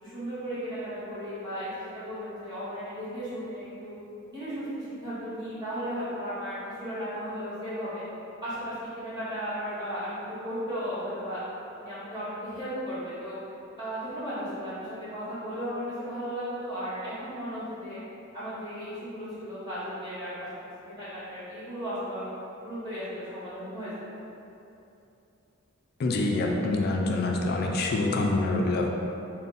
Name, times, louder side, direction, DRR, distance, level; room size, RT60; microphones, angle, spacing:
voice 1, 0.0-3.9 4.3-8.0 8.4-11.4 11.8-13.4 13.8-18.0 18.3-20.5 20.9-22.3 22.6-23.9, equal, 20° right, -14 dB, 1.5 m, -35 dB
voice 2, 26.0-28.9, left 2 dB, 50° left, 0 dB, 0.3 m, -26 dB
3.4 x 2.1 x 4.0 m, 2.8 s
head